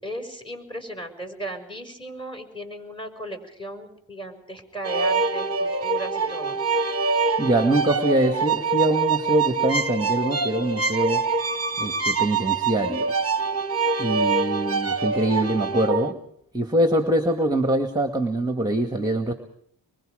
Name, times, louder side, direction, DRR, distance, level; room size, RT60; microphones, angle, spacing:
voice 1, 0.0-6.6, right 1 dB, 10° left, 3 dB, 6.1 m, -36 dB
sound 1, 4.8-16.1, right 4 dB, 30° right, 1.3 m, -25 dB
voice 2, 7.4-11.2 11.8-13.1 14.0-16.2 16.5-19.3, right 1 dB, 10° right, 6 dB, 1.9 m, -23 dB
25.0 x 23.0 x 5.1 m, 0.69 s
cardioid pair, 60°, 45 cm